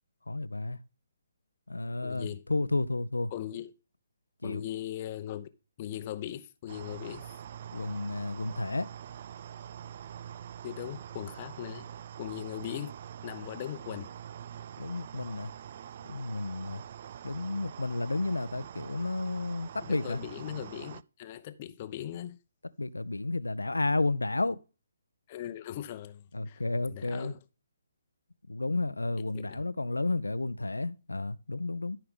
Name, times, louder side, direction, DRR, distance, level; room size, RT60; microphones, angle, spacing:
voice 1, 0.3-0.8 1.7-3.3 4.4-4.6 7.7-8.9 14.8-15.5 16.1-16.8 17.2-20.2 22.8-24.6 26.3-27.3 28.5-32.0, left 2 dB, 75° left, 0.6 m, -32 dB
voice 2, 2.0-2.4 3.3-3.7 4.4-5.5 5.8-7.3 10.6-11.9 12.2-12.9 13.2-14.1 19.8-22.4 25.3-27.4 29.3-29.6, left 11 dB, 30° left, 0.8 m, -39 dB
sound 1, 6.7-21.0, right 9 dB, 40° right, 0.3 m, -45 dB
13.0 x 5.8 x 3.7 m
figure-of-eight pair, 135°, 0 cm